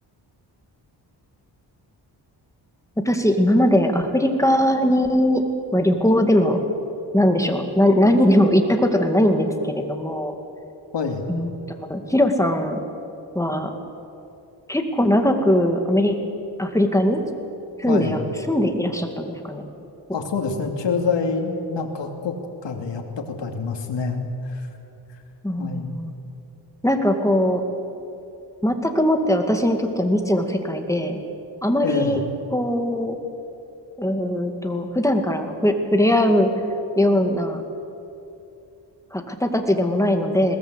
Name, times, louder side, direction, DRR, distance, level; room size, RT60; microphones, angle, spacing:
voice 1, 3.1-5.4 5.7-6.6 7.1-10.3 11.3-11.5 11.9-12.8 13.3-13.7 14.7-16.2 16.6-17.2 17.8-18.2 18.5-19.7 25.4-26.1 26.8-27.6 28.6-31.2 31.6-32.2 32.5-33.2 34.0-36.5 37.0-37.6 39.1-40.6, left 1 dB, 5° left, 5 dB, 2.2 m, -20 dB
voice 2, 10.9-11.2 17.9-18.2 20.1-22.4 22.6-24.2 24.5-24.7 25.6-25.9 31.8-32.2, left 5 dB, 75° left, 3 dB, 2.7 m, -26 dB
21.5 x 18.5 x 8.2 m, 2.8 s
wide cardioid pair, 110°, 43 cm